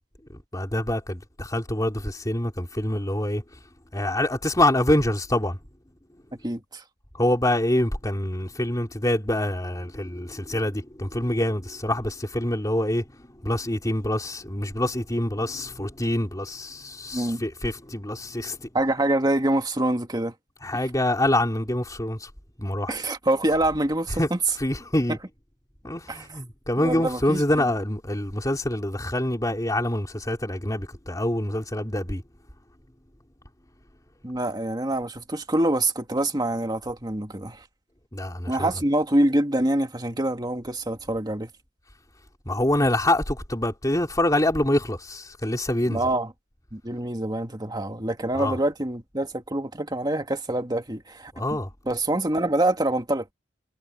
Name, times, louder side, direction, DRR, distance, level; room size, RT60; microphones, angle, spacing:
voice 1, 0.5-3.4 3.9-5.6 7.2-13.0 13.4-18.7 20.6-22.3 22.6-22.9 24.2-24.3 24.6-25.2 25.8-32.2 38.1-38.7 42.5-46.0 48.3-48.6 51.3-51.7, left 1 dB, 20° left, 3.4 m, -25 dB
voice 2, 6.4-6.8 17.1-17.4 18.7-20.3 20.7-20.9 22.9-24.4 25.1-25.2 26.1-26.4 26.8-27.7 34.2-37.7 38.5-41.5 45.9-46.3 46.7-51.6 51.9-53.3, right 1 dB, 20° right, 2.1 m, -25 dB
head